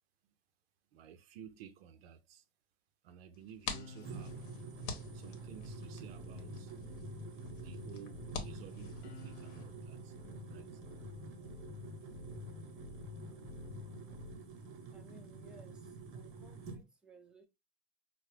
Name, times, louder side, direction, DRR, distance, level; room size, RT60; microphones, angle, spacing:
voice 1, 0.9-2.5 3.0-4.5 5.1-6.7 7.3-10.2 10.5-10.8, right 9 dB, 65° right, 0.5 m, -54 dB
sound 1, 3.3-9.6, left 4 dB, 55° left, 1.0 m, -48 dB
sound 2, 3.7-14.4, left 5 dB, 75° left, 0.7 m, -50 dB
sound 3, 4.0-16.8, right 5 dB, 40° right, 0.9 m, -49 dB
voice 2, 14.9-17.5, right 2 dB, ahead, 0.6 m, -60 dB
4.5 x 2.0 x 3.0 m
hypercardioid pair, 95°, 33 cm